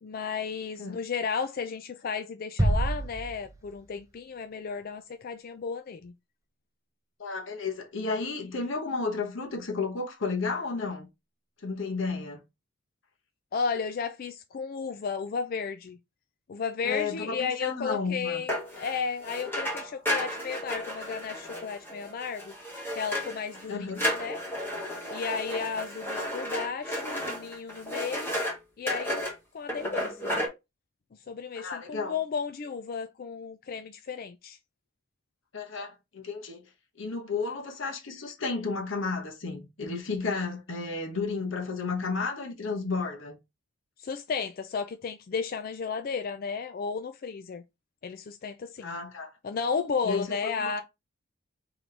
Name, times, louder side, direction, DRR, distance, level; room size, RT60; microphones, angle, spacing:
voice 1, 0.0-6.1 13.5-16.0 16.5-22.5 22.9-24.4 25.1-28.4 28.8-30.3 31.3-34.6 44.0-47.6 48.0-48.9 49.4-50.8, left 5 dB, 45° left, 0.3 m, -33 dB
sound 1, 2.6-4.2, right 1 dB, 15° right, 0.5 m, -28 dB
voice 2, 7.2-11.1 11.6-12.4 16.8-18.4 23.7-24.1 31.5-32.2 35.5-36.6 37.0-43.4 48.8-49.3 50.0-50.8, left 4 dB, 65° left, 1.0 m, -32 dB
sound 2, 18.5-23.7 23.9-28.6 28.9-29.3 29.7-30.5, equal, 10° left, 1.1 m, -33 dB
3.9 x 3.0 x 3.3 m
head